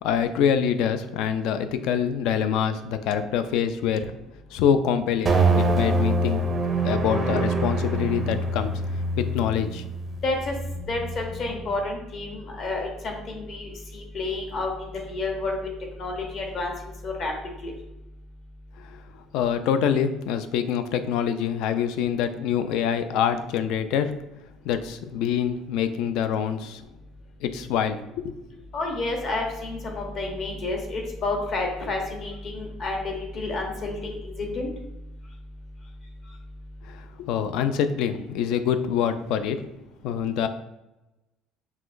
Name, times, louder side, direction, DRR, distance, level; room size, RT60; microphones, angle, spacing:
voice 1, 0.0-4.1 4.5-6.4 6.8-8.7 9.2-9.8 19.3-24.2 24.6-26.8 27.4-28.3 36.9-39.6 40.0-40.5, left 8 dB, 70° left, 10 dB, 0.3 m, -25 dB
sound 1, 5.3-11.7, right 2 dB, 20° right, 0.5 m, -25 dB
voice 2, 10.2-10.5 10.9-15.6 16.0-16.7 17.0-17.3 17.6-17.7 28.7-34.7, left 2 dB, 35° left, 2 dB, 0.8 m, -30 dB
5.7 x 2.9 x 2.5 m, 0.95 s
cardioid pair, 175°, 0 cm